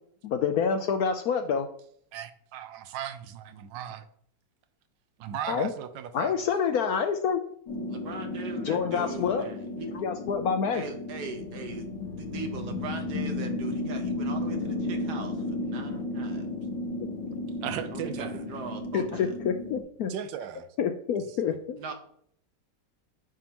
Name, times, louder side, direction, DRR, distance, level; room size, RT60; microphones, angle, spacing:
voice 1, 0.2-1.7 5.5-5.7 6.1-7.4 8.6-9.4 9.9-10.8 18.9-20.1 20.8-21.8, left 6 dB, 70° left, 7 dB, 0.9 m, -27 dB
voice 2, 2.1-4.1 5.2-6.4 17.6-18.4 20.1-20.7, right 9 dB, 85° right, 10 dB, 1.3 m, -37 dB
sound 1, 7.7-19.8, left 2 dB, 90° left, 2.0 m, -34 dB
voice 3, 7.9-9.9 10.7-16.5 17.8-19.3 21.8-21.9, right 4 dB, 65° right, 5 dB, 1.4 m, -40 dB
9.5 x 3.8 x 2.9 m, 0.65 s
omnidirectional pair, 2.0 m